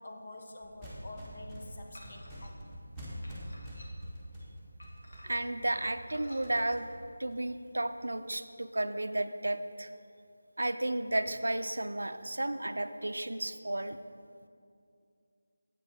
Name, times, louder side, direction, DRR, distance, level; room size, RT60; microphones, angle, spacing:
voice 1, 0.0-2.6, left 2 dB, 50° left, 3 dB, 0.9 m, -47 dB
sound 1, 0.6-8.0, equal, 5° left, 1.2 m, -46 dB
sound 2, 1.9-2.5 3.2-4.2 4.8-5.5 6.0-6.5, left 1 dB, 80° left, 1.6 m, -54 dB
voice 2, 5.2-6.9 7.2-9.9 10.6-14.0, right 1 dB, 85° right, 9 dB, 0.4 m, -33 dB
8.2 x 5.4 x 5.5 m, 2.4 s
figure-of-eight pair, 170°, 0 cm